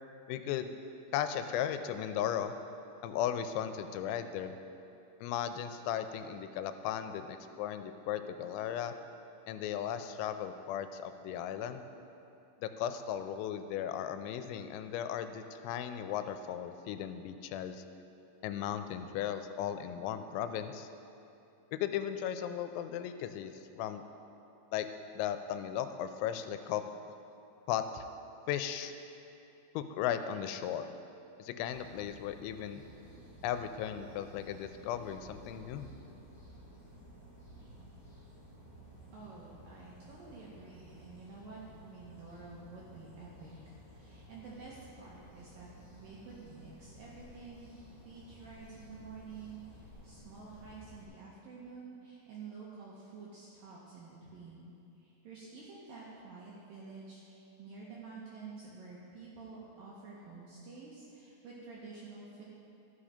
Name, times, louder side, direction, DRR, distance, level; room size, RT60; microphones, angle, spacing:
voice 1, 0.3-0.7 1.1-2.6 3.0-4.5 5.2-8.9 9.5-11.8 12.6-17.8 18.4-20.9 21.7-24.0 24.7-24.9 25.1-26.8 27.7-28.0 28.5-28.9 29.8-30.9 31.4-32.8 33.4-35.9, left 10 dB, 85° left, 9 dB, 2.9 m, -36 dB
sound 1, 31.6-51.0, equal, 25° left, 2.2 m, -55 dB
voice 2, 39.1-47.7 48.0-62.4, right 4 dB, 75° right, -5 dB, 2.1 m, -50 dB
13.5 x 5.7 x 5.0 m, 2.8 s
omnidirectional pair, 5.3 m